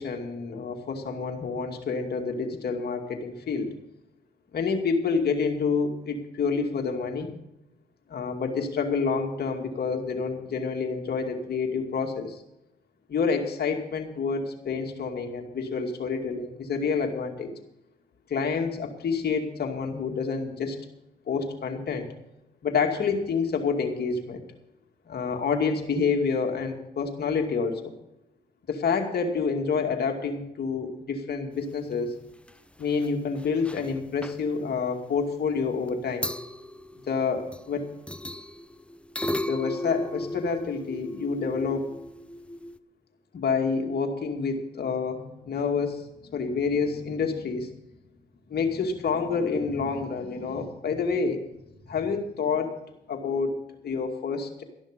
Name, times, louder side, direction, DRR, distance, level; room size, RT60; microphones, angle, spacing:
voice 1, 0.0-3.7 4.5-7.3 8.1-12.4 13.1-17.5 18.3-20.8 21.3-22.1 22.6-24.4 25.1-27.8 28.7-32.2 32.8-36.3 37.1-37.9 39.4-42.0 43.3-46.0 46.3-47.7 48.5-51.4 51.9-52.8 53.1-54.6, left 5 dB, 55° left, 4 dB, 2.4 m, -28 dB
sound 1, 32.3-32.5 32.8-33.1 33.3-33.9 34.2-34.4 35.9-36.0 36.2-37.7 38.1-42.8, left 1 dB, 5° left, 0.6 m, -35 dB
13.0 x 11.5 x 5.2 m, 0.88 s
supercardioid pair, 65°, 20 cm